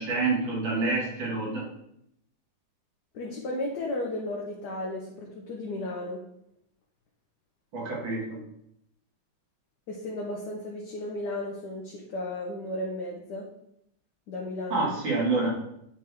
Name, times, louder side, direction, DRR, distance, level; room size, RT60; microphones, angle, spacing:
voice 1, 0.0-1.6 7.7-8.4 14.7-15.5, right 3 dB, 85° right, -4 dB, 2.7 m, -27 dB
voice 2, 3.1-6.2 9.9-13.5 14.3-14.9, left 1 dB, 65° left, -2 dB, 1.5 m, -34 dB
9.0 x 4.5 x 3.5 m, 0.76 s
omnidirectional pair, 2.0 m